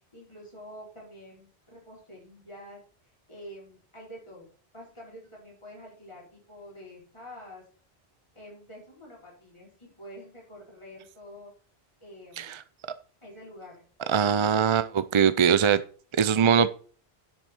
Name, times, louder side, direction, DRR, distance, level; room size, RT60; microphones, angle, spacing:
voice 1, 0.1-2.8 3.3-4.5 4.7-7.7 8.3-11.5 12.0-12.5 13.2-13.8, equal, 25° left, -5 dB, 4.6 m, -47 dB
voice 2, 14.1-15.8 16.2-16.7, right 7 dB, 45° right, 14 dB, 0.4 m, -22 dB
10.0 x 7.4 x 4.4 m, 0.43 s
omnidirectional pair, 1.1 m